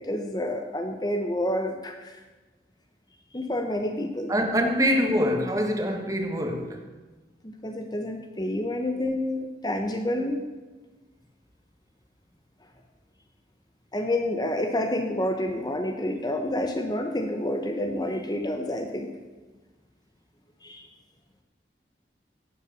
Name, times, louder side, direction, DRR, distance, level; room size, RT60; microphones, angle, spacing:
voice 1, 0.0-2.2 3.3-4.3 7.4-10.4 13.9-19.1 20.6-20.9, left 1 dB, 20° left, 5 dB, 0.9 m, -29 dB
voice 2, 4.3-6.9, equal, 20° right, 5 dB, 1.3 m, -25 dB
17.0 x 8.2 x 6.9 m, 1.2 s
head